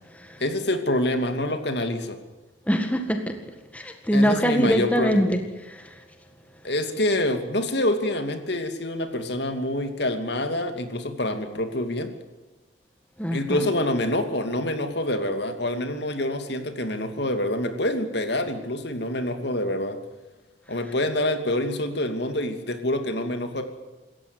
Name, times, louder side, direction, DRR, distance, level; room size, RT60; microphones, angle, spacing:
voice 1, 0.4-2.2 4.1-5.4 6.6-12.1 13.3-20.0 20.7-23.6, left 1 dB, 60° left, 7 dB, 2.8 m, -26 dB
voice 2, 2.7-3.4 3.7-5.4 5.7-6.0 13.2-13.7, equal, 5° left, 6 dB, 1.8 m, -23 dB
27.0 x 14.5 x 8.2 m, 1.2 s
head